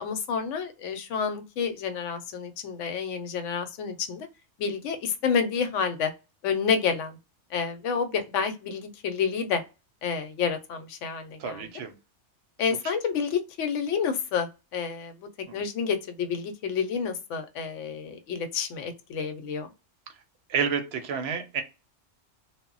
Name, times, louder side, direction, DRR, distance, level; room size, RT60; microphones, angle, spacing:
voice 1, 0.0-4.3 4.6-6.1 6.4-7.2 7.5-9.6 10.0-11.7 12.6-15.1 15.5-19.7, left 6 dB, 80° left, 0.9 m, -29 dB
voice 2, 11.4-11.9 12.8-12.9 15.5-15.6 20.5-21.6, right 6 dB, 65° right, 0.7 m, -30 dB
2.1 x 2.0 x 3.7 m
omnidirectional pair, 1.2 m